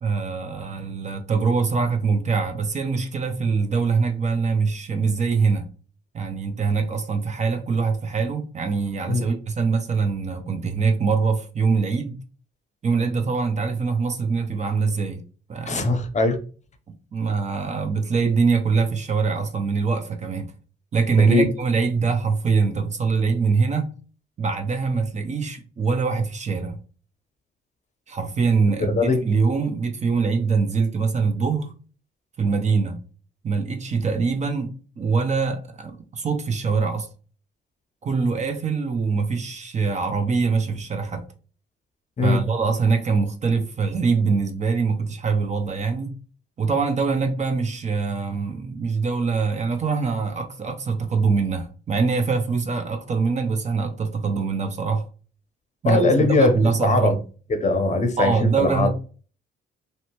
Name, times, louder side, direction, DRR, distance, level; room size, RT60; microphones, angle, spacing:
voice 1, 0.0-5.7 6.1-12.2 12.8-15.2 15.5-15.9 17.1-20.5 20.9-23.9 24.4-26.8 28.1-31.7 32.4-33.0 33.4-34.7 35.0-37.1 38.0-41.2 42.2-46.1 46.6-55.0 55.8-57.2 58.2-58.9, right 4 dB, 35° right, 0.5 m, -23 dB
voice 2, 15.7-16.4 21.3-21.5 28.9-29.2 42.2-42.4 55.8-56.5 56.8-57.2 57.5-58.9, left 3 dB, 35° left, 0.6 m, -20 dB
2.7 x 2.2 x 2.9 m
cardioid pair, 90°, 20 cm